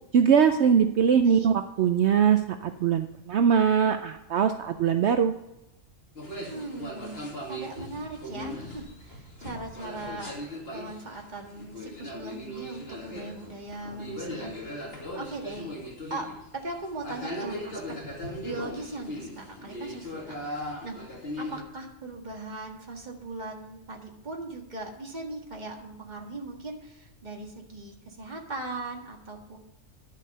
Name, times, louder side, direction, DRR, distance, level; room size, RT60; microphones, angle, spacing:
voice 1, 0.1-5.3, right 7 dB, 65° right, 8 dB, 0.8 m, -22 dB
sound 1, 6.2-21.6, left 1 dB, 50° left, 2.7 m, -38 dB
voice 2, 6.5-7.2 7.5-15.7 16.1-16.3 16.5-17.8 18.4-21.0 21.4-29.6, right 2 dB, 35° right, 1 dB, 1.8 m, -39 dB
11.0 x 7.4 x 5.4 m, 0.90 s
omnidirectional pair, 1.4 m